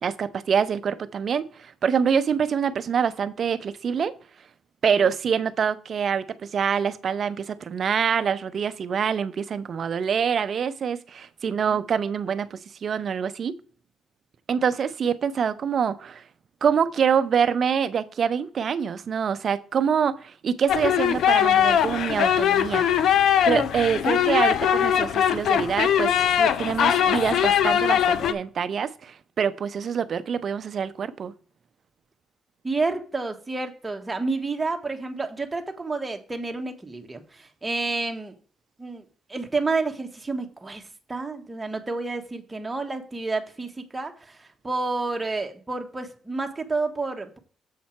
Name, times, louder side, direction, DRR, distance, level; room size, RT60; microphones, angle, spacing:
voice 1, 0.0-4.1 4.8-13.6 14.5-16.2 16.6-22.9 23.4-31.3, right 7 dB, 55° right, 0.6 m, -25 dB
sound 1, 20.7-28.3, left 9 dB, 70° left, 0.6 m, -21 dB
voice 2, 32.6-38.3 38.8-39.0 39.3-40.8 41.1-47.4, right 3 dB, 20° right, 1.3 m, -30 dB
7.5 x 5.5 x 4.4 m
cardioid pair, 90°, 0 cm